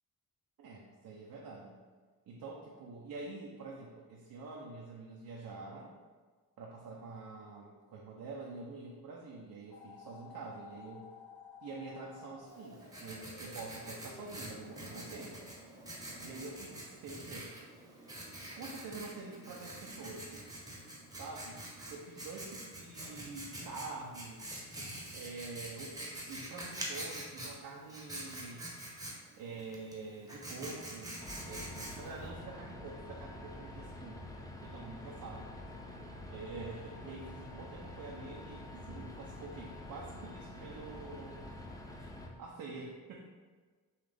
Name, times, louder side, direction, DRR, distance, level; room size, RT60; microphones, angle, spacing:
voice 1, 0.6-1.8 2.3-5.9 6.6-11.1 11.6-15.5 16.2-17.5 18.5-20.3 21.2-21.6 21.9-24.6 25.1-28.7 29.4-31.2 31.4-34.3 34.6-35.5 36.3-41.6 42.0-42.1 42.4-43.2, right 3 dB, 65° right, -2 dB, 0.7 m, -46 dB
sound 1, 9.7-15.2, left 4 dB, 50° left, 1.5 m, -54 dB
Writing, 12.5-32.3, right 1 dB, 10° right, 0.9 m, -46 dB
sound 2, 31.2-42.3, left 1 dB, 10° left, 0.4 m, -47 dB
5.6 x 2.4 x 3.4 m, 1.4 s
cardioid pair, 105°, 36 cm